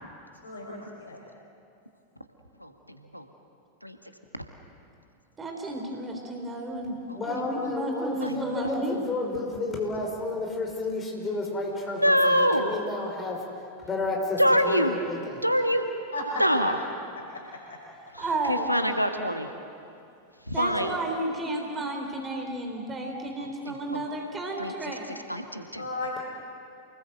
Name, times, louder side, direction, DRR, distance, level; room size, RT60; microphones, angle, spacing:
voice 1, 0.4-1.2 16.1-16.4 17.3-17.8 20.5-20.9 25.7-26.2, left 2 dB, 70° left, -1 dB, 5.2 m, -36 dB
voice 2, 2.6-3.2 3.8-4.0 4.3-4.4 7.1-7.2 7.6-7.7 8.2-8.3 11.9-12.7 14.4-15.0 15.4-15.9 16.4-16.8 18.1-19.5 20.5-21.0 23.4-24.0 24.6-24.7 25.3-25.8, equal, 90° left, 7 dB, 1.5 m, -25 dB
voice 3, 5.4-7.0 7.2-9.0 18.2-18.7 20.5-25.1, right 1 dB, 20° right, 2 dB, 3.5 m, -32 dB
voice 4, 7.1-13.4 13.8-15.4, left 2 dB, 20° left, 0 dB, 5.7 m, -32 dB
28.0 x 20.0 x 8.0 m, 2.6 s
figure-of-eight pair, 90°, 0 cm